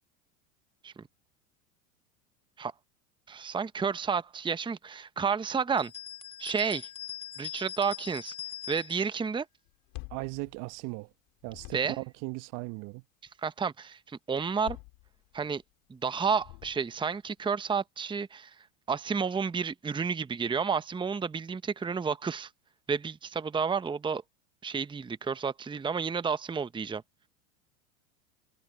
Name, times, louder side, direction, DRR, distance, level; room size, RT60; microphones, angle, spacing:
voice 1, 3.3-5.9 6.4-6.9 7.4-8.3 8.7-9.5 11.7-12.0 13.4-14.8 15.3-15.6 15.9-18.5 18.9-22.5 22.9-24.2 24.6-27.0, right 6 dB, 10° right, 1.0 m, -31 dB
sound 1, 5.8-9.1, left 10 dB, 15° left, 2.6 m, -42 dB
sound 2, 9.7-11.1 11.4-12.2 14.4-15.6 16.3-17.1, left 29 dB, 55° left, 5.6 m, -47 dB
voice 2, 10.1-11.1 11.4-13.0, right 26 dB, 50° right, 1.2 m, -37 dB
hypercardioid pair, 90°, 41 cm